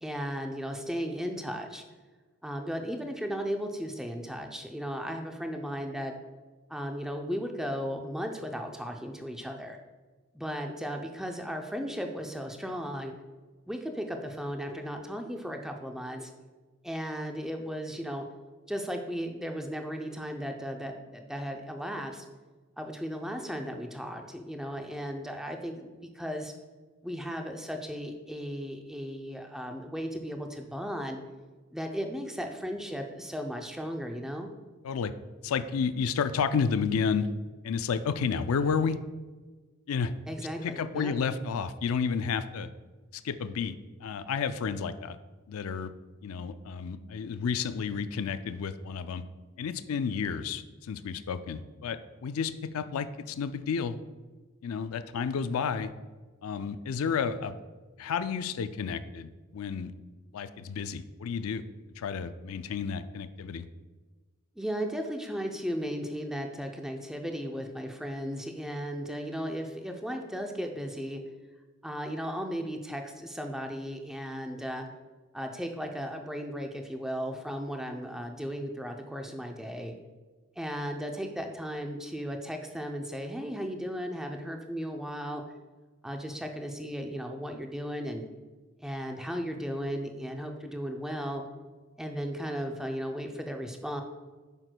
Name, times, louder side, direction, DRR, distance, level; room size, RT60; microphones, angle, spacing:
voice 1, 0.0-1.8 2.4-6.2 6.7-9.8 10.3-13.1 13.7-16.3 16.8-18.2 18.7-22.3 22.8-26.5 27.0-31.2 31.7-34.5 40.3-41.1 64.6-71.2 71.8-74.9 75.3-79.9 80.6-85.4 86.0-88.2 88.8-91.4 92.0-94.0, equal, ahead, 3 dB, 0.5 m, -35 dB
voice 2, 35.4-37.3 37.6-39.0 39.9-40.1 40.6-42.7 43.1-43.7 44.0-45.2 45.5-45.9 46.2-49.2 49.6-54.0 54.6-55.9 56.4-57.6 58.0-59.9 60.3-61.6 62.0-63.7, left 6 dB, 80° left, 12 dB, 0.4 m, -31 dB
8.8 x 6.1 x 2.2 m, 1.3 s
head